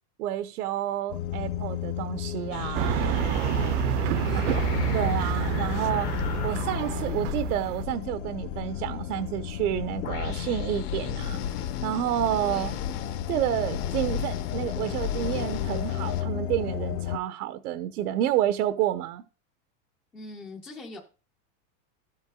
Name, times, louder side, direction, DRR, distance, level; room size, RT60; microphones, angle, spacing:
voice 1, 0.2-3.0 4.3-4.6 4.9-12.8 13.3-19.2, right 12 dB, 75° right, 0.9 m, -29 dB
sound 1, 1.1-17.2, left 11 dB, 55° left, 0.9 m, -34 dB
sound 2, 2.5-16.2, left 9 dB, 80° left, 1.5 m, -34 dB
sound 3, 2.7-7.8, right 12 dB, 50° right, 0.7 m, -28 dB
voice 2, 4.1-4.8 12.5-12.8 20.1-21.0, left 2 dB, 5° left, 0.4 m, -42 dB
12.5 x 8.0 x 2.3 m
supercardioid pair, 170°, 46 cm